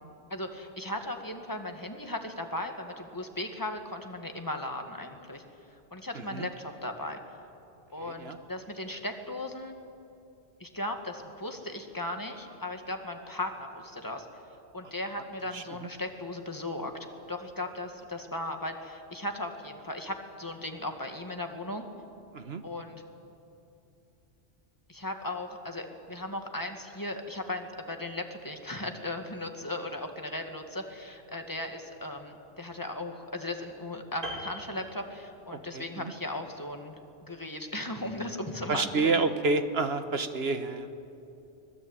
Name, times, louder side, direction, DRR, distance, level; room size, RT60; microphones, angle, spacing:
voice 1, 0.3-5.4 5.9-7.2 7.9-9.8 10.6-14.3 14.7-16.9 17.3-21.8 22.6-23.0 24.9-37.0 37.3-39.2, left 1 dB, 15° left, 4 dB, 2.0 m, -37 dB
Piano, 34.2-35.7 35.9-36.2, right 1 dB, 50° right, 4.2 m, -41 dB
voice 2, 35.5-35.8 38.7-40.9, right 3 dB, 65° right, 9 dB, 1.5 m, -28 dB
24.5 x 19.5 x 9.0 m, 2.7 s
omnidirectional pair, 1.1 m